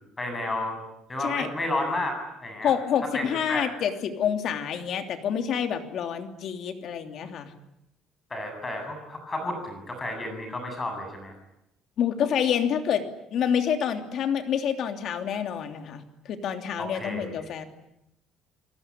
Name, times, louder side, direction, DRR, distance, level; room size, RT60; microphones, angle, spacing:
voice 1, 0.2-0.8 1.1-2.1 2.4-2.7 3.1-3.7 8.3-11.3 16.8-17.5, left 1 dB, 15° left, 5 dB, 8.0 m, -32 dB
voice 2, 1.2-1.5 2.6-7.5 12.0-13.0 13.3-17.6, left 8 dB, 50° left, 7 dB, 2.9 m, -27 dB
29.0 x 19.0 x 10.0 m, 0.85 s
cardioid pair, 165°, 0 cm